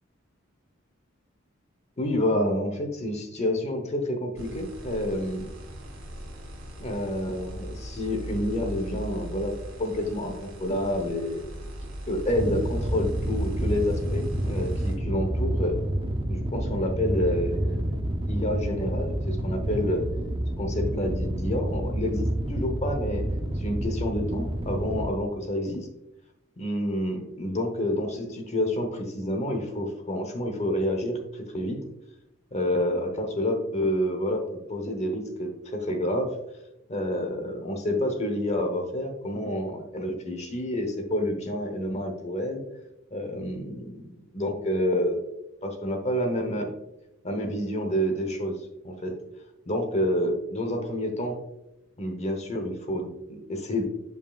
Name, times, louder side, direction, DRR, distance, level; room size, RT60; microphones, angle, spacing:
voice 1, 2.0-5.5 6.8-11.6 12.1-15.8 16.3-18.0 18.3-20.0 20.6-23.2 23.6-25.9 26.6-31.8 32.5-36.3 36.9-42.6 43.1-45.2 45.6-46.7 47.2-48.6 48.8-49.1 49.7-51.4 52.0-53.8, left 1 dB, 35° left, 5 dB, 0.9 m, -29 dB
sound 1, 4.4-14.9, right 1 dB, 75° right, 1.9 m, -39 dB
sound 2, 12.3-25.1, right 1 dB, 25° right, 0.7 m, -29 dB
7.5 x 5.3 x 2.4 m, 0.89 s
head